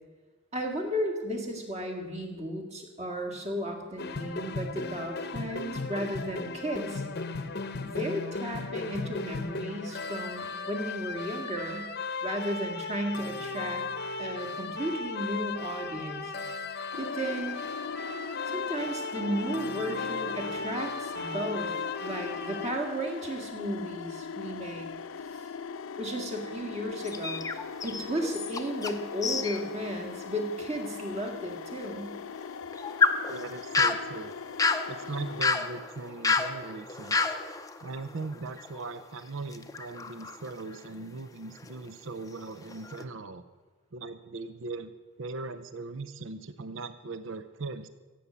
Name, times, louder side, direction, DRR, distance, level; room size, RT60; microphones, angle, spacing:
voice 1, 0.5-7.0 7.8-11.9 12.2-13.8 14.2-16.3 17.0-17.6 18.5-21.7 22.0-24.9 25.3-25.4 26.0-27.4 27.8-32.2, equal, 30° right, 3 dB, 2.0 m, -34 dB
sound 1, 4.0-22.7, left 4 dB, 50° left, 0.8 m, -36 dB
sound 2, 16.9-35.4, left 6 dB, 70° left, 0.5 m, -40 dB
sound 3, 27.0-29.0 29.2-29.6 30.0-30.1 30.8-30.9 32.4-39.1 39.5-41.0 41.6-41.8 42.3-43.0, left 4 dB, 15° left, 0.6 m, -31 dB
voice 2, 33.3-34.3 34.9-37.3 37.8-43.4 43.9-44.9 45.2-47.9, right 3 dB, 60° right, 12 dB, 0.6 m, -39 dB
16.0 x 8.5 x 6.8 m, 1.3 s
head